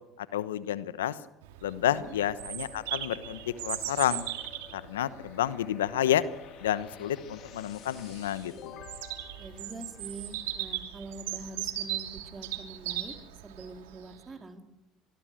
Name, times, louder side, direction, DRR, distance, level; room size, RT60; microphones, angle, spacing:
voice 1, 0.2-1.2 1.6-4.3 4.7-6.2 6.6-8.8, left 11 dB, 90° left, 15 dB, 1.0 m, -30 dB
Bird vocalization bird call bird song, 1.4-14.2, right 14 dB, 80° right, 2.8 m, -38 dB
voice 2, 1.8-2.2 9.4-13.1 13.4-14.6, right 2 dB, 25° right, 6 dB, 4.1 m, -44 dB
sound 1, 1.9-10.5, left 8 dB, 60° left, 2.5 m, -51 dB
25.0 x 21.0 x 7.8 m, 0.88 s
hypercardioid pair, 70°, 0 cm